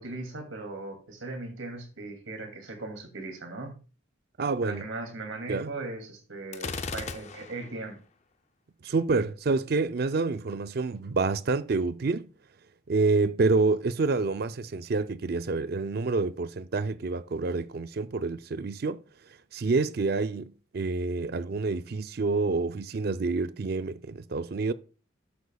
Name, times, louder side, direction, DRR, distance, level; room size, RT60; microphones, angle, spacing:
voice 1, 0.0-3.7 4.6-8.0, right 2 dB, 70° right, 2.5 m, -38 dB
voice 2, 4.4-4.9 5.5-5.7 8.8-12.3 12.9-19.0 19.5-24.7, right 3 dB, 50° right, 0.4 m, -28 dB
Gunshot gunfire, 6.5-7.8, left 4 dB, 35° left, 0.5 m, -36 dB
13.0 x 8.2 x 2.3 m
head